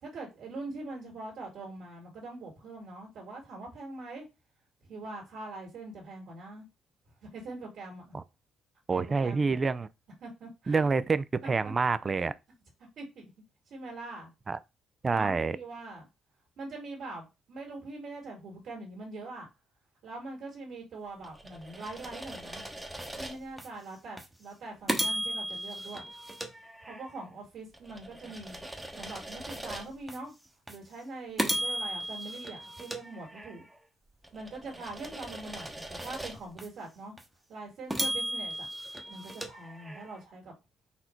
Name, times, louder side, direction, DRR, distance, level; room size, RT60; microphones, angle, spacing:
voice 1, 0.0-4.3 4.9-6.6 7.2-8.1 8.9-9.5 10.2-10.9 11.4-11.7 12.1-12.3 13.0-13.3 13.7-14.3 15.1-16.1 16.6-19.5 20.0-22.7 23.2-26.0 26.8-28.6 29.0-30.3 30.7-33.7 34.3-37.1 37.5-38.7 39.1-40.6, right 2 dB, 65° right, 1.9 m, -43 dB
voice 2, 8.9-9.9 10.7-12.3 14.5-14.6 15.0-15.6, right 4 dB, 30° right, 0.3 m, -27 dB
sound 1, 21.2-23.7 24.2-24.3 24.9-27.2 27.7-30.2 30.7-30.8 31.4-33.7 34.2-36.7 37.2-37.3 37.9-40.2, right 1 dB, 10° right, 0.8 m, -37 dB
4.2 x 2.6 x 4.4 m
cardioid pair, 110°, 0 cm